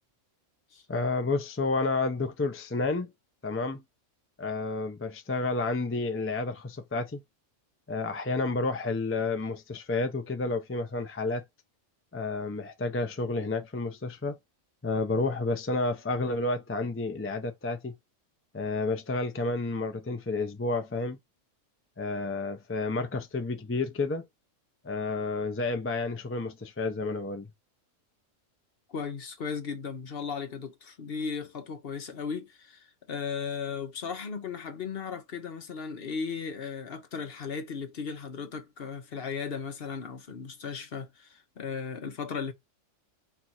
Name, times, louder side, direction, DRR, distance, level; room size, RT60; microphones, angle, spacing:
voice 1, 0.9-3.1 3.4-3.8 4.4-7.2 7.9-11.4 12.1-14.4 14.8-18.0 18.5-21.2 22.0-24.2 24.8-27.5, left 3 dB, 20° left, 0.4 m, -30 dB
voice 2, 28.9-42.5, left 6 dB, 50° left, 1.0 m, -36 dB
4.5 x 2.5 x 4.3 m
omnidirectional pair, 1.3 m